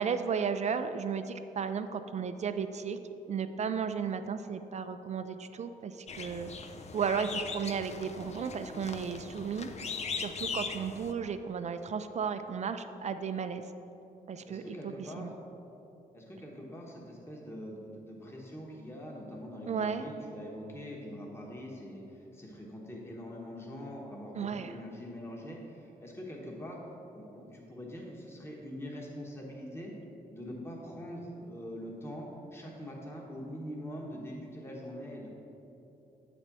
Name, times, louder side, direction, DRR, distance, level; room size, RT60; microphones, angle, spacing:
voice 1, 0.0-3.0 3.3-6.5 6.9-9.7 10.2-13.6 14.3-15.3 19.7-20.0 24.3-24.7, right 6 dB, 45° right, 9 dB, 0.4 m, -34 dB
sound 1, 6.1-11.1, left 5 dB, 45° left, 0.5 m, -40 dB
voice 2, 14.4-15.3 16.1-26.8 27.1-29.9 30.3-35.3, equal, 15° left, -2 dB, 1.2 m, -43 dB
7.9 x 4.2 x 6.0 m, 3.0 s
cardioid pair, 85°, 16 cm